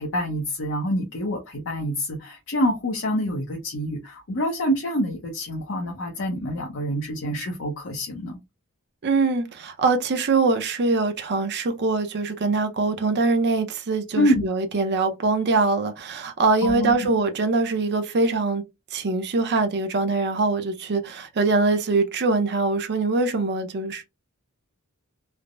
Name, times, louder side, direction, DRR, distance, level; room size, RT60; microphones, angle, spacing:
voice 1, 0.0-8.4 14.1-14.5 16.6-17.1, equal, 60° left, 0.7 m, -26 dB
voice 2, 9.0-18.6 18.9-24.0, right 3 dB, 50° right, 0.5 m, -23 dB
3.3 x 2.0 x 2.4 m
head